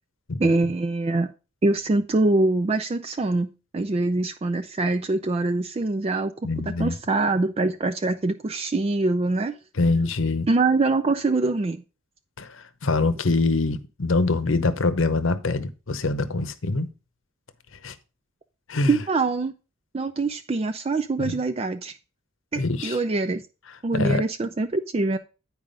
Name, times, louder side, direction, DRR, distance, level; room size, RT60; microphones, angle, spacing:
voice 1, 0.4-1.3 1.6-6.3 6.7-9.5 10.5-11.8 18.9-19.5 19.9-21.9 22.5-23.4 23.8-25.2, right 3 dB, 30° right, 0.4 m, -24 dB
voice 2, 6.4-7.0 9.8-10.5 12.4-16.9 17.8-17.9 18.7-19.0 21.2-21.3 22.6-23.0 23.9-24.2, left 3 dB, 65° left, 0.8 m, -24 dB
9.0 x 4.7 x 5.2 m
head